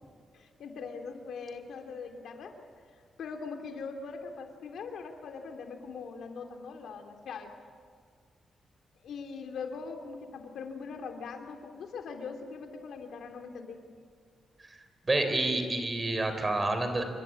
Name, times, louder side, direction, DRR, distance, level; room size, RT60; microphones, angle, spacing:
voice 1, 0.3-2.5 3.2-7.5 9.0-13.8, left 5 dB, 80° left, 4 dB, 2.9 m, -41 dB
voice 2, 15.1-17.0, right 2 dB, 20° right, 7 dB, 3.4 m, -28 dB
27.5 x 24.5 x 8.5 m, 2.1 s
wide cardioid pair, 150°, 0 cm